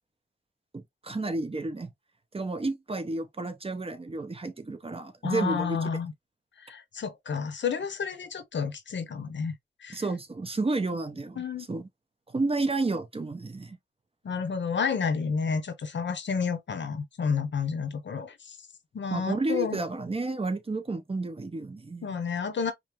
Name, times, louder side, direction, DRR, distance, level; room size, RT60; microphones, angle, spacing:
voice 1, 0.7-1.9 2.3-5.8 9.9-11.9 12.3-13.8 19.1-22.2, right 3 dB, 30° right, 0.8 m, -31 dB
voice 2, 5.2-6.1 6.6-9.6 9.8-10.0 11.4-11.7 14.2-18.6 18.9-19.8 22.0-22.7, left 6 dB, 75° left, 0.8 m, -30 dB
5.1 x 2.1 x 2.9 m
wide cardioid pair, 95°, 19 cm